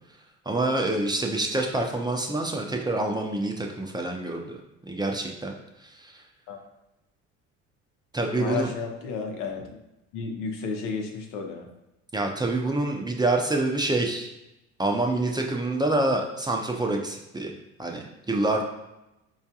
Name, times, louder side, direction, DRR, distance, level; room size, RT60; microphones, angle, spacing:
voice 1, 0.5-4.5 4.8-5.5 5.8-6.2 8.1-8.7 12.1-14.3 14.8-17.5 17.8-18.6, right 2 dB, 15° right, 1 dB, 0.5 m, -26 dB
voice 2, 8.3-9.8 10.1-11.7, left 5 dB, 75° left, 2 dB, 0.7 m, -32 dB
4.3 x 2.3 x 2.8 m, 0.92 s
supercardioid pair, 75°, 32 cm